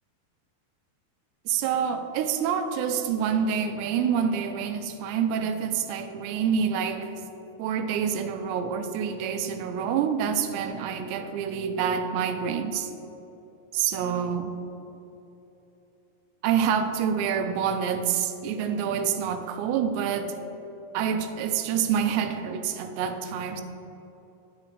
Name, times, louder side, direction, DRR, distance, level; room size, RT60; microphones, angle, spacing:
voice 1, 1.5-7.1 7.6-12.9 13.7-14.5 16.4-20.3 20.9-23.6, right 7 dB, 90° right, 8 dB, 2.8 m, -27 dB
10.5 x 8.9 x 3.2 m, 3.0 s
omnidirectional pair, 4.9 m